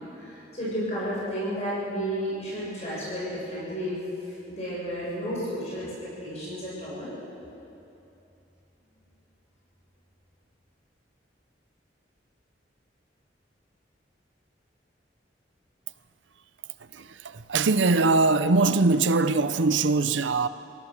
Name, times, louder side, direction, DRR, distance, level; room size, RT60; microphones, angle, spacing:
voice 1, 0.1-4.0 4.2-5.9 6.2-7.1, equal, 35° left, 6.9 m, -32 dB
voice 2, 16.9-20.5, right 3 dB, 90° right, 0.7 m, -22 dB
27.5 x 16.5 x 6.6 m
head